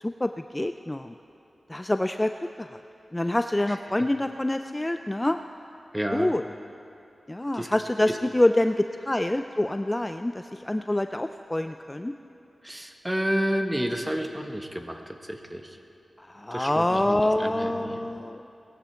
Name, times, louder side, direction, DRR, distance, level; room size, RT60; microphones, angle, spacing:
voice 1, 0.0-1.1 1.7-2.3 2.6-2.7 3.1-5.4 6.1-6.4 7.3-12.1 16.2-18.4, left 1 dB, 15° left, 8 dB, 0.4 m, -26 dB
voice 2, 5.9-6.3 7.5-7.7 8.1-8.2 12.6-15.8 16.5-18.0, equal, 10° right, 4 dB, 1.2 m, -30 dB
19.0 x 14.5 x 4.5 m, 2.7 s
wide cardioid pair, 70°, 0 cm